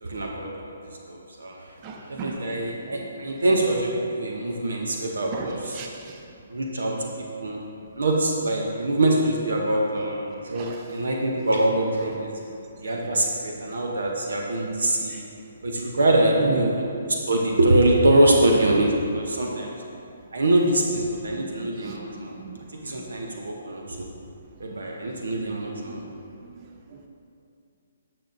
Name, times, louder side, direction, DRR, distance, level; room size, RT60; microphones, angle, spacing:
voice 1, 0.0-0.7 1.1-1.7 2.1-5.8 6.5-7.1 7.4-7.6 7.9-12.4 12.8-15.2 15.6-16.9 17.3-19.7 20.3-22.3 22.8-24.1 24.6-26.0, right 1 dB, 70° right, 0 dB, 0.8 m, -24 dB
voice 2, 1.8-2.5 2.9-3.0 5.3-6.2 10.5-10.9 13.0-13.2 13.7-13.8 15.0-15.2 16.4-16.8 19.6-19.7 21.4-23.1 25.0-25.2 25.9-26.0 26.4-26.5 26.9-27.0, right 4 dB, 30° right, 2 dB, 0.6 m, -36 dB
10.0 x 6.1 x 2.6 m, 2.6 s
figure-of-eight pair, 135°, 0 cm